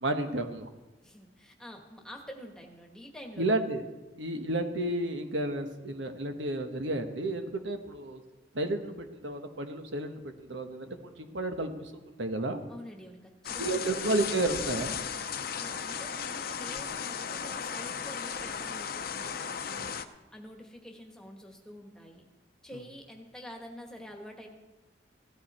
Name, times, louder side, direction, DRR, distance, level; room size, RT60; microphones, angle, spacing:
voice 1, 0.0-0.7 3.4-3.8 4.2-8.2 8.5-11.9 12.2-12.6 13.6-15.0, right 2 dB, 85° right, 6 dB, 1.2 m, -32 dB
voice 2, 1.0-3.5 12.7-14.1 15.5-19.9 20.3-22.2 22.6-24.5, left 1 dB, 5° left, 2 dB, 1.5 m, -47 dB
sound 1, 13.4-20.0, left 7 dB, 50° left, 0.7 m, -36 dB
16.0 x 12.5 x 4.3 m, 1.1 s
head